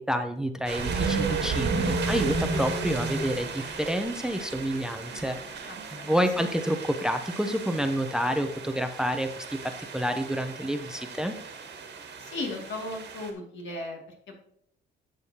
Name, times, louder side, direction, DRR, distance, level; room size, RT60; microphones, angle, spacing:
voice 1, 0.0-11.3, equal, 5° right, 8 dB, 0.7 m, -29 dB
sound 1, 0.6-13.3, right 4 dB, 60° right, 1.7 m, -33 dB
voice 2, 5.6-6.5 12.2-14.0 14.3-14.4, left 2 dB, 70° left, 1 dB, 2.3 m, -37 dB
11.0 x 6.5 x 2.9 m, 0.70 s
cardioid pair, 90°, 20 cm